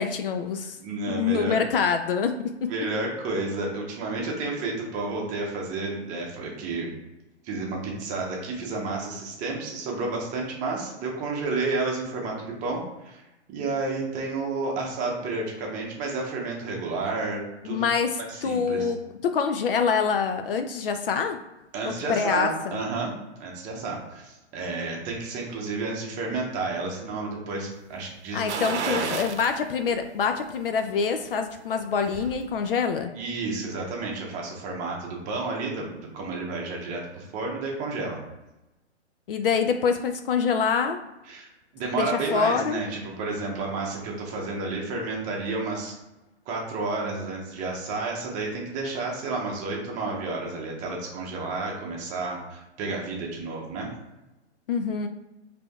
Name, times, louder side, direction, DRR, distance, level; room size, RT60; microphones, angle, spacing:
voice 1, 0.0-0.8 1.1-2.7 17.6-21.4 21.8-22.8 28.3-33.1 39.3-41.0 42.0-42.8 54.7-55.1, left 6 dB, 55° left, 7 dB, 0.4 m, -26 dB
voice 2, 0.8-1.6 2.7-6.9 7.4-13.2 13.5-17.9 18.3-18.9 21.7-23.1 23.4-29.2 33.1-38.2 41.3-45.9 46.5-53.9, right 3 dB, 20° right, -1 dB, 0.9 m, -31 dB
sound 1, 28.5-29.5 30.0-30.1 31.6-32.4 32.7-32.8, right 5 dB, 70° right, 0.8 m, -31 dB
4.9 x 3.3 x 2.3 m, 0.99 s
hypercardioid pair, 135°, 35 cm